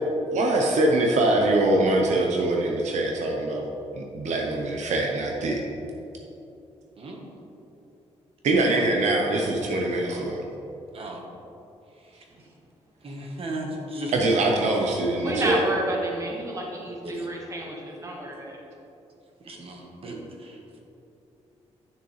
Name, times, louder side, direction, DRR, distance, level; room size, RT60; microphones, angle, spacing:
voice 1, 0.3-3.7 3.9-5.6 8.4-10.4 14.1-15.6, right 2 dB, 80° right, 0 dB, 0.9 m, -23 dB
voice 2, 7.0-7.4 8.6-8.9 10.1-10.3 10.9-11.2 12.0-12.2 13.0-14.6 17.0-17.3 19.4-20.6, right 1 dB, 50° right, 0 dB, 1.4 m, -36 dB
voice 3, 15.2-18.6, right 1 dB, 25° right, -1 dB, 1.4 m, -30 dB
9.8 x 6.4 x 3.3 m, 2.9 s
cardioid pair, 110°, 12 cm